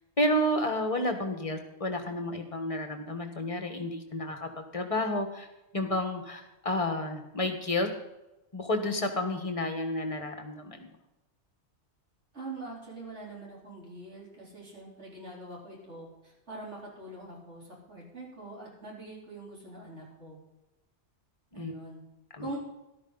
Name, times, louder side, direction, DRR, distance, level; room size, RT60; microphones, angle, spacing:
voice 1, 0.2-5.5 5.7-7.9 8.5-10.9 21.5-21.7 22.3-22.5, left 1 dB, 30° left, 5 dB, 1.6 m, -31 dB
voice 2, 12.3-20.4 21.5-22.0 22.4-22.6, right 2 dB, 75° right, -4 dB, 4.4 m, -43 dB
13.5 x 12.0 x 4.1 m, 0.95 s
omnidirectional pair, 1.2 m